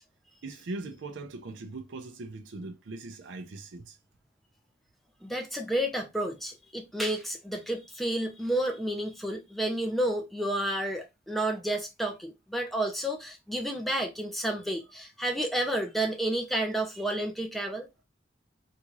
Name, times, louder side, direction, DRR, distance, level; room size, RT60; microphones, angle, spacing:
voice 1, 0.4-4.0, right 3 dB, 75° right, 0.5 m, -40 dB
voice 2, 5.2-17.9, right 1 dB, ahead, 0.6 m, -31 dB
3.6 x 2.5 x 3.0 m
head